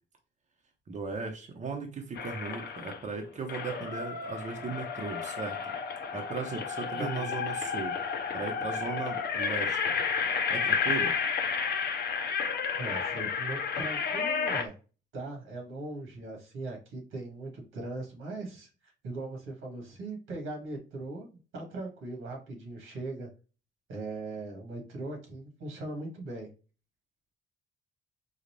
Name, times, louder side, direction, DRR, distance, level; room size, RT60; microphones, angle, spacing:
voice 1, 0.9-5.7 6.1-8.0 8.3-9.8 10.5-11.1, right 4 dB, 35° right, 2 dB, 0.9 m, -37 dB
sound 1, 2.1-3.1 3.5-14.7, left 6 dB, 55° left, 0.6 m, -31 dB
voice 2, 7.0-7.3 12.8-14.8 15.1-21.3 21.5-23.3 23.9-26.5, right 2 dB, 90° right, 1 dB, 1.8 m, -39 dB
3.9 x 2.4 x 3.1 m, 0.34 s
cardioid pair, 90°, 20 cm